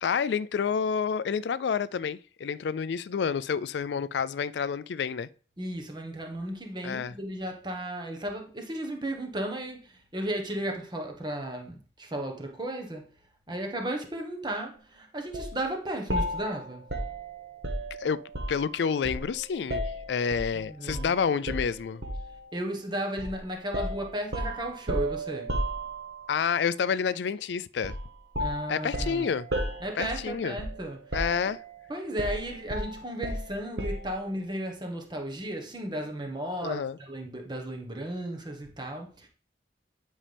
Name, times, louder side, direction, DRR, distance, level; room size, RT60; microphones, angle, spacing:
voice 1, 0.0-5.3 6.8-7.1 18.0-18.2 18.5-22.0 26.3-28.0 28.7-29.5 30.0-30.5 31.1-31.6 36.6-37.0, left 6 dB, 75° left, 0.4 m, -29 dB
voice 2, 5.6-13.1 13.5-16.9 20.5-21.2 22.5-25.6 28.4-29.3 29.8-31.2 31.5-31.6 31.9-39.3, right 1 dB, 25° right, 1.4 m, -34 dB
sound 1, 15.3-15.6 16.1-18.7 19.0-20.5 20.9-21.1 21.5-22.4 23.2-23.4 23.7-26.3 27.8-28.1 28.3-30.9 31.1-31.7 32.2-34.2, right 1 dB, 80° right, 1.6 m, -33 dB
10.0 x 5.5 x 3.5 m
head